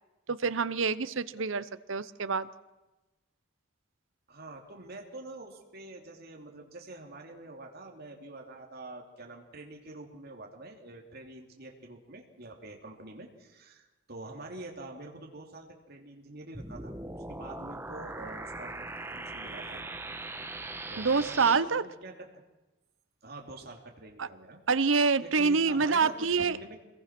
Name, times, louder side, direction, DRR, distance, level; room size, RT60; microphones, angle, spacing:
voice 1, 0.3-2.5 21.0-21.8 24.2-24.3 24.7-26.6, right 4 dB, 75° right, 14 dB, 0.8 m, -26 dB
voice 2, 4.3-19.8 20.9-22.4 23.2-24.6 25.2-26.7, right 2 dB, 50° right, 1 dB, 3.1 m, -46 dB
sound 1, 16.5-21.5, right 2 dB, 10° right, 1.1 m, -40 dB
25.0 x 21.5 x 6.1 m, 1.1 s
head